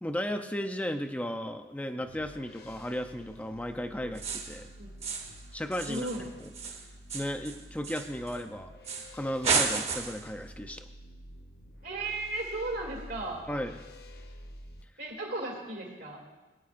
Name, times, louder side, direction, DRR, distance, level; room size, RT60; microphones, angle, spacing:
voice 1, 0.0-4.7 5.5-6.8 7.1-8.7 9.1-10.8 13.5-13.7, equal, 10° left, 6 dB, 0.5 m, -35 dB
sound 1, 2.0-14.8, equal, 60° left, 0.7 m, -50 dB
sound 2, 4.2-4.6 5.0-5.4 5.7-8.4 8.9-9.1 9.4-10.3, right 5 dB, 35° right, 0.9 m, -32 dB
voice 2, 5.9-6.2 11.8-13.4 15.0-16.2, right 2 dB, 85° right, -3 dB, 2.4 m, -35 dB
18.5 x 9.3 x 2.5 m, 1.2 s
head